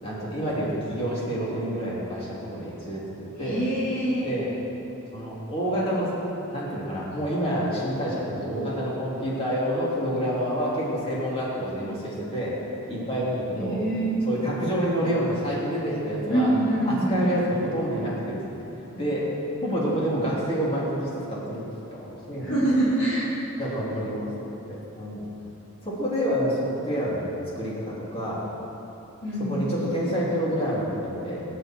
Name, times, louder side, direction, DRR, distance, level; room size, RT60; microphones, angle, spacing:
voice 1, 0.0-3.6 4.2-4.5 5.1-6.1 6.5-12.6 12.9-13.8 14.2-16.5 16.8-18.6 18.9-19.3 19.6-21.6 21.9-22.5 23.6-24.3 24.7-25.2 25.8-27.3 27.5-28.4 29.4-31.4, equal, 30° left, -7 dB, 3.4 m, -28 dB
voice 2, 3.4-4.3 11.8-12.0 13.5-14.3 16.3-17.2 22.4-23.4 29.2-29.7, right 1 dB, 60° left, -9 dB, 3.7 m, -25 dB
20.5 x 10.5 x 4.7 m, 3.0 s
head